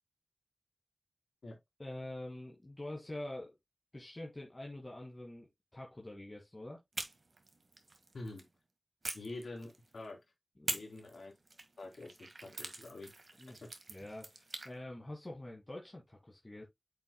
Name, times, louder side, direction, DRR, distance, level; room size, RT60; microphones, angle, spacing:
voice 1, 1.8-3.6 3.9-6.8 10.6-10.8 13.4-13.6 13.9-16.6, left 1 dB, 30° left, 2.1 m, -46 dB
sound 1, 6.9-8.5 9.0-10.1 10.7-14.7, right 2 dB, 55° right, 1.7 m, -44 dB
voice 2, 9.1-10.2 10.6-11.3 11.8-13.1, left 2 dB, 80° left, 3.3 m, -46 dB
8.8 x 6.0 x 2.2 m
wide cardioid pair, 65°, 0 cm